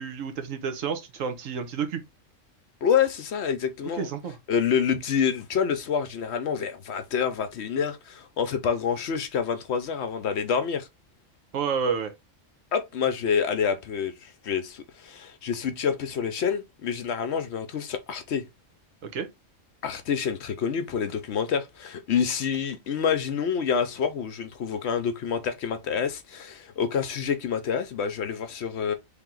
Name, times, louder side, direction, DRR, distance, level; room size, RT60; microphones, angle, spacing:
voice 1, 0.0-2.0 3.9-4.4 11.5-12.1 19.0-19.3, right 6 dB, 80° right, 1.2 m, -30 dB
voice 2, 2.8-4.1 4.5-10.9 12.7-18.4 19.8-28.9, left 7 dB, 65° left, 0.9 m, -27 dB
3.4 x 2.9 x 3.7 m
omnidirectional pair, 1.3 m